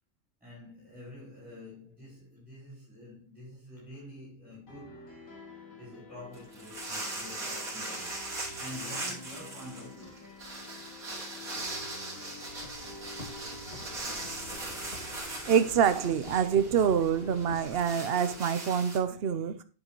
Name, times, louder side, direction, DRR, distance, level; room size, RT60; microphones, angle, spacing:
voice 1, 0.4-5.2 5.7-10.2 11.7-12.4, left 1 dB, ahead, 4.9 m, -48 dB
sound 1, 4.7-18.4, left 2 dB, 70° left, 2.5 m, -48 dB
sound 2, 6.3-19.0, right 2 dB, 85° right, 3.0 m, -40 dB
sound 3, 12.5-17.8, left 2 dB, 40° left, 2.5 m, -49 dB
voice 2, 15.5-19.6, right 8 dB, 50° right, 0.9 m, -26 dB
9.2 x 7.6 x 3.0 m
omnidirectional pair, 1.5 m